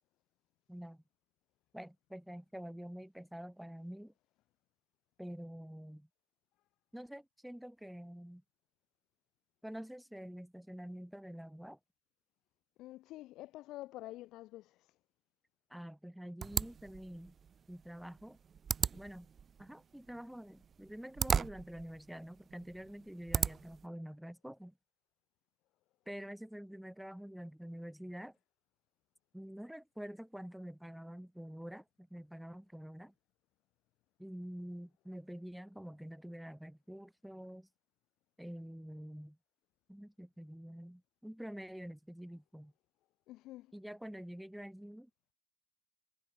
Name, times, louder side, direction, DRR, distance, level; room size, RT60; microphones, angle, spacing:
voice 1, 0.7-1.0 1.7-4.1 5.2-6.1 6.9-8.4 9.6-11.8 15.7-17.3 17.7-18.4 18.9-19.3 19.6-24.7 26.1-28.4 29.3-33.1 34.2-37.7 38.4-39.4 39.9-42.7 43.7-45.3, equal, ahead, 5.6 m, -47 dB
voice 2, 12.8-14.9 43.3-43.7, left 16 dB, 45° left, 3.3 m, -48 dB
sound 1, 16.4-23.8, right 7 dB, 20° right, 2.5 m, -38 dB
cardioid pair, 180°, 0 cm